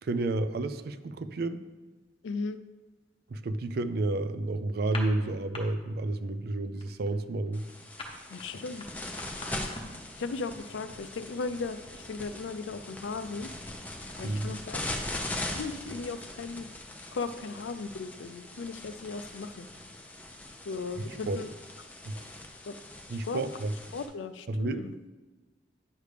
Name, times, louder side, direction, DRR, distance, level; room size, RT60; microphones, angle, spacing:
voice 1, 0.0-1.6 3.3-7.6 14.2-14.5 21.0-21.4 22.1-22.2 23.1-23.7 24.5-24.8, right 2 dB, 55° right, 12 dB, 0.4 m, -31 dB
voice 2, 2.2-2.6 8.3-8.9 9.7-9.9 10.2-13.5 14.2-15.0 15.5-16.7 17.1-19.7 20.7-21.5 22.7-22.8 23.3-23.4 23.9-24.9, left 4 dB, 75° left, 12 dB, 0.4 m, -37 dB
sound 1, 4.8-5.6 5.9-6.2 6.5-10.1, left 2 dB, 30° left, 1.0 m, -42 dB
sound 2, 7.5-24.0, left 1 dB, 10° left, 0.7 m, -41 dB
9.6 x 3.3 x 6.6 m, 1.2 s
head